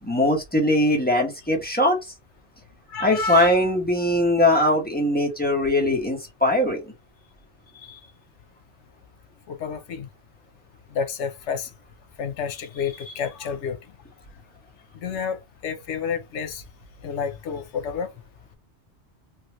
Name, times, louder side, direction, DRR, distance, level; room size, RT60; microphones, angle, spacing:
voice 1, 0.0-2.0 3.0-6.8, left 1 dB, 10° left, 1.0 m, -21 dB
voice 2, 2.9-3.6 7.7-8.0 9.5-10.1 10.9-11.7 12.2-13.8 14.9-16.6 17.0-18.1, left 6 dB, 85° left, 1.0 m, -30 dB
3.3 x 2.4 x 3.0 m
omnidirectional pair, 1.2 m